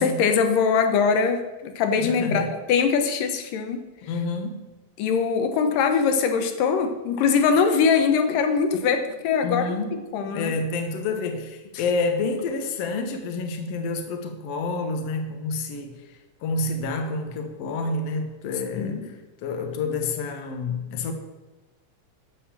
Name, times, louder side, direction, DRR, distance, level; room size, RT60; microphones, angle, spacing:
voice 1, 0.0-3.8 5.0-9.8 10.1-10.5 18.8-19.1, left 6 dB, 85° left, 7 dB, 2.5 m, -22 dB
voice 2, 2.0-2.5 4.0-4.6 9.4-10.1 10.3-16.0 16.4-19.0 19.4-21.1, left 3 dB, 60° left, 5 dB, 2.0 m, -28 dB
12.5 x 5.6 x 7.2 m, 1.1 s
omnidirectional pair, 3.8 m